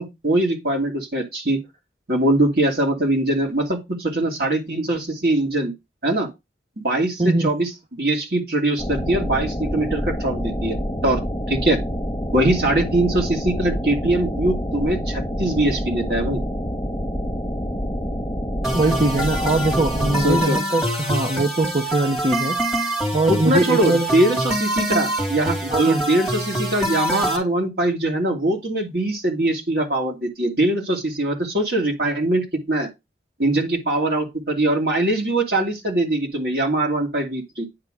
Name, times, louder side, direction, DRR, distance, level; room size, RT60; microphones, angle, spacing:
voice 1, 0.0-1.6 2.1-5.7 6.0-6.3 6.8-11.2 11.5-11.8 12.3-16.4 20.2-20.6 23.3-32.9 33.4-37.7, right 1 dB, 60° right, 2.7 m, -22 dB
voice 2, 7.2-7.5 18.7-24.1 25.7-26.0, right 2 dB, 35° right, 1.0 m, -22 dB
sound 1, 8.8-20.4, equal, 15° left, 1.7 m, -27 dB
sound 2, 18.6-27.4, right 1 dB, 5° right, 2.5 m, -25 dB
9.8 x 3.7 x 5.0 m
head